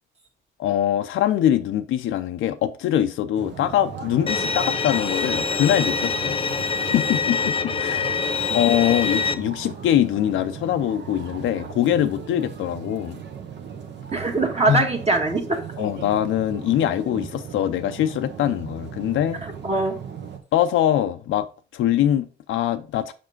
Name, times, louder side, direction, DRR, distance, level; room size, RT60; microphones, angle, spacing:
voice 1, 0.6-6.4 6.9-8.1 8.5-13.2 14.7-14.8 15.8-19.4 20.5-21.5 21.7-23.1, left 11 dB, 80° left, 0.6 m, -23 dB
sound 1, 3.4-20.4, right 7 dB, 65° right, 1.1 m, -37 dB
Bowed string instrument, 4.3-9.3, left 4 dB, 25° left, 0.4 m, -25 dB
voice 2, 14.1-15.6 19.4-19.9, right 2 dB, 30° right, 1.5 m, -22 dB
5.4 x 5.1 x 3.8 m
cardioid pair, 90°, 20 cm